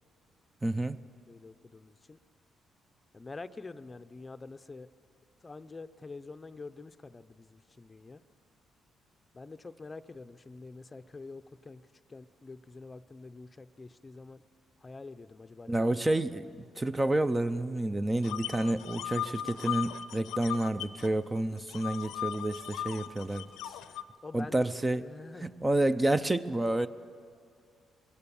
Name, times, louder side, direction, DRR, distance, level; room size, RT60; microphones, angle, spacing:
voice 1, 0.6-1.0 15.7-23.5 24.3-25.1 25.4-26.9, right 1 dB, 15° right, 12 dB, 0.5 m, -29 dB
voice 2, 1.3-2.2 3.1-4.9 5.4-8.2 9.3-14.4 14.8-15.9 16.6-16.7 24.2-25.5, left 3 dB, 25° left, 11 dB, 0.6 m, -46 dB
sound 1, 18.2-21.1 21.4-24.0, left 11 dB, 90° left, 0.7 m, -37 dB
22.5 x 17.5 x 7.0 m, 2.2 s
cardioid pair, 90°, 0 cm